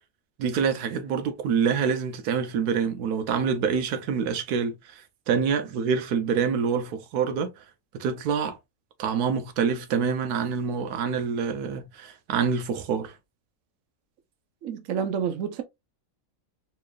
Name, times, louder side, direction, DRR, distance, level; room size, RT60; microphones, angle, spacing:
voice 1, 0.4-5.0 5.3-7.5 7.9-8.6 9.0-13.1, right 6 dB, 90° right, 1.2 m, -26 dB
voice 2, 14.6-15.6, right 7 dB, 65° right, 1.1 m, -29 dB
4.3 x 3.0 x 2.3 m
omnidirectional pair, 1.6 m